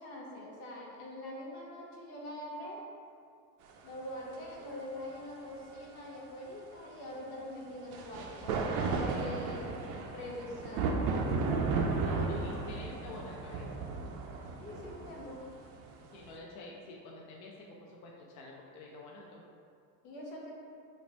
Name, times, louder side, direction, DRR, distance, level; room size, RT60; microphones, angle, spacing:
voice 1, 0.0-2.8 3.8-9.8 10.1-11.1 14.6-15.4 20.0-20.5, left 1 dB, 65° left, -3 dB, 1.0 m, -44 dB
sound 1, 4.0-4.1 7.9-16.3, right 4 dB, 65° right, 0.6 m, -34 dB
voice 2, 11.9-13.7 16.1-19.4, left 2 dB, 40° left, -2 dB, 0.4 m, -48 dB
3.1 x 2.0 x 4.0 m, 2.4 s
supercardioid pair, 110°, 49 cm